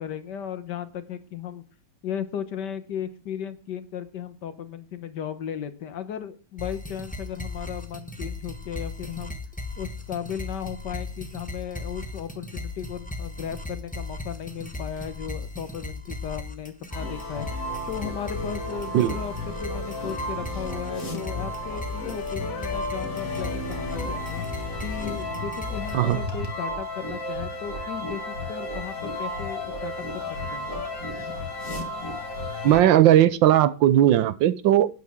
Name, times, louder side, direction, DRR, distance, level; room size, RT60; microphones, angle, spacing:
voice 1, 0.0-1.6 2.0-9.4 9.8-17.5 17.9-24.4 24.8-30.2 30.5-30.7, left 8 dB, 65° left, 1.6 m, -35 dB
sound 1, 6.6-26.2, left 2 dB, 5° left, 0.9 m, -37 dB
sound 2, 16.9-32.8, left 1 dB, 45° left, 2.4 m, -33 dB
voice 2, 32.6-34.9, right 12 dB, 80° right, 1.4 m, -18 dB
12.0 x 9.5 x 3.6 m
omnidirectional pair, 2.1 m